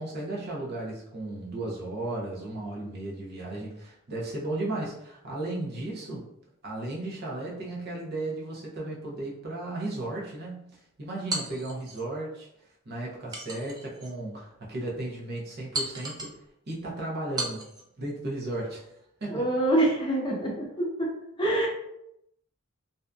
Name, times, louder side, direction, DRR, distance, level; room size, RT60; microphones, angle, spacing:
voice 1, 0.0-6.3 6.6-12.5 12.9-16.3 16.7-17.7 18.0-18.9 19.2-19.5, right 2 dB, 50° right, -3 dB, 0.7 m, -35 dB
sound 1, 11.3-12.1 13.3-14.1 14.7-14.8 15.7-16.4 17.4-17.9, right 2 dB, 20° right, 0.4 m, -35 dB
voice 2, 19.3-21.1 21.4-21.7, right 1 dB, 25° left, -3 dB, 0.7 m, -25 dB
2.6 x 2.4 x 2.2 m, 0.80 s
head